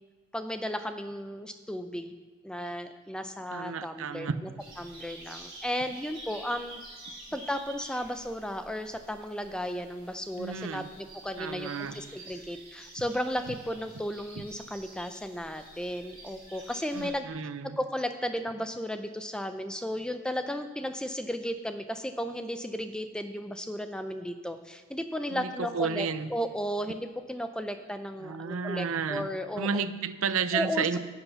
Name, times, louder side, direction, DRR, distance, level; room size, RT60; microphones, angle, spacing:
voice 1, 0.3-2.1 2.4-4.5 4.8-6.8 7.3-17.3 17.8-29.8 30.5-31.0, equal, 5° left, 8 dB, 0.4 m, -34 dB
voice 2, 3.5-4.3 10.4-10.9 11.4-12.0 13.5-13.6 16.9-17.8 25.3-26.3 28.2-29.3 29.6-31.0, right 5 dB, 70° right, 12 dB, 0.5 m, -32 dB
sound 1, 4.6-17.1, right 2 dB, 25° right, 2.9 m, -49 dB
9.8 x 8.0 x 5.7 m, 1.4 s
head